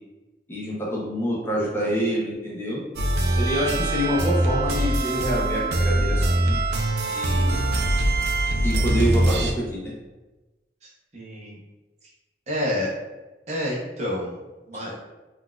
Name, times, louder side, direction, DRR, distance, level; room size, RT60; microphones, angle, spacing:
voice 1, 0.5-2.8 3.3-6.6 7.1-7.6 8.6-9.9 14.7-14.8, equal, 15° left, -5 dB, 0.6 m, -27 dB
sound 1, 3.0-9.5, right 1 dB, 70° right, 0.4 m, -22 dB
voice 2, 11.1-11.6 12.5-12.9 13.5-14.4 14.7-15.0, left 1 dB, 40° right, -3 dB, 0.7 m, -28 dB
3.9 x 2.4 x 2.3 m, 1.1 s
head